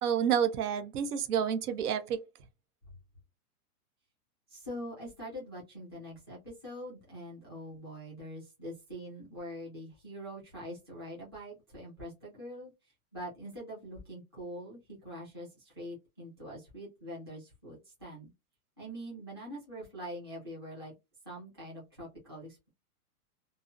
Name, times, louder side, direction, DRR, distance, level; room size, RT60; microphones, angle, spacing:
voice 1, 0.0-2.2, right 8 dB, 80° right, 0.7 m, -29 dB
voice 2, 4.5-18.3 18.8-20.9 21.2-22.7, equal, 20° right, 0.4 m, -44 dB
2.6 x 2.0 x 2.4 m
supercardioid pair, 180°, 45 cm